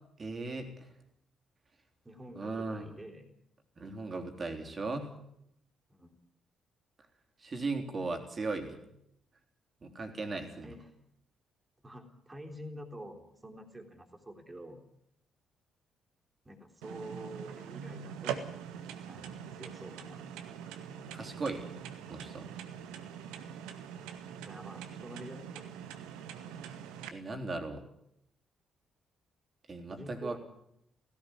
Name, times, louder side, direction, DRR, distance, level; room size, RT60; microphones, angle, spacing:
voice 1, 0.2-0.7 2.4-3.0 3.8-5.1 7.4-8.8 9.8-10.7 21.1-21.7 22.1-22.5 27.1-27.8 29.7-30.4, right 3 dB, 35° right, 4 dB, 3.4 m, -37 dB
voice 2, 2.1-3.3 5.9-6.1 10.6-10.9 11.8-14.8 16.5-18.5 19.1-20.2 24.4-25.7 29.9-30.4, right 1 dB, 20° right, 3 dB, 3.5 m, -47 dB
sound 1, 16.8-27.1, right 8 dB, 65° right, 1.5 m, -43 dB
17.0 x 16.5 x 9.9 m, 0.76 s
figure-of-eight pair, 40°, 0 cm